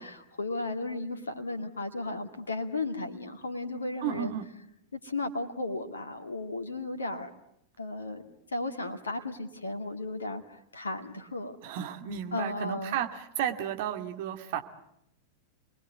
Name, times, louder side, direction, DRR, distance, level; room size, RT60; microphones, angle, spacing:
voice 1, 0.0-4.3 5.0-7.3 7.8-8.2 8.5-11.5 12.3-12.9, left 2 dB, 75° left, 6 dB, 2.1 m, -35 dB
voice 2, 4.0-4.5 11.6-14.6, right 10 dB, 50° right, 6 dB, 2.5 m, -33 dB
29.5 x 21.0 x 9.5 m, 0.77 s
figure-of-eight pair, 90°, 0 cm